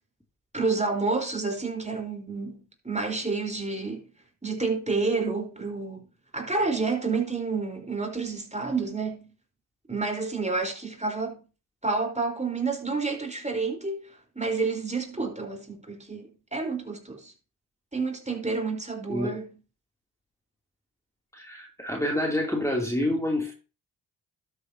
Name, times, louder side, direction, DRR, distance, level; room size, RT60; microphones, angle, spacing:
voice 1, 0.5-4.0 4.4-6.0 6.3-9.3 9.9-11.4 11.8-17.3 17.9-19.5, right 4 dB, 15° right, 4.2 m, -29 dB
voice 2, 21.3-23.5, left 1 dB, 5° left, 2.9 m, -27 dB
12.5 x 8.2 x 2.8 m
supercardioid pair, 45°, 44 cm